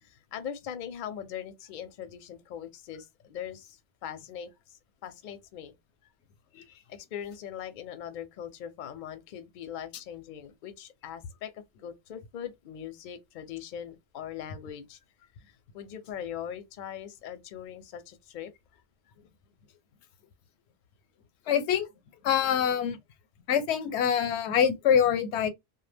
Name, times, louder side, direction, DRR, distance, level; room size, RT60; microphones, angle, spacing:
voice 1, 0.0-5.8 6.9-15.0 15.5-18.8, left 9 dB, 60° left, 0.6 m, -41 dB
voice 2, 21.5-21.9 22.2-23.0 23.5-25.5, left 8 dB, 90° left, 0.9 m, -25 dB
2.1 x 2.1 x 3.3 m
omnidirectional pair, 1.1 m